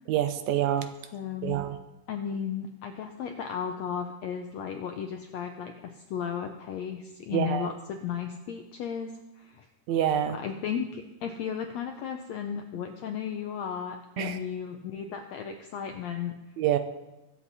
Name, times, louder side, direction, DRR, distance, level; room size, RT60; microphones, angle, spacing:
voice 1, 0.1-0.9 1.4-1.8 7.3-7.7 9.9-10.4 14.2-14.4 16.6-16.8, right 10 dB, 75° right, 8 dB, 1.9 m, -26 dB
voice 2, 1.1-1.7 2.1-9.6 10.3-16.3, left 8 dB, 80° left, 4 dB, 1.6 m, -35 dB
21.5 x 7.6 x 4.1 m, 0.99 s
omnidirectional pair, 3.9 m